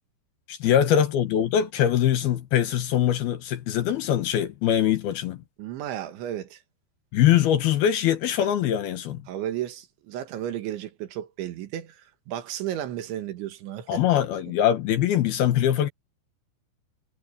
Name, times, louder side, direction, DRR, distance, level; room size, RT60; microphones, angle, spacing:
voice 1, 0.5-5.4 7.1-9.2 13.9-15.9, left 10 dB, 70° left, 2.8 m, -22 dB
voice 2, 5.6-6.6 9.3-14.2, right 11 dB, 80° right, 4.1 m, -34 dB
omnidirectional pair, 5.3 m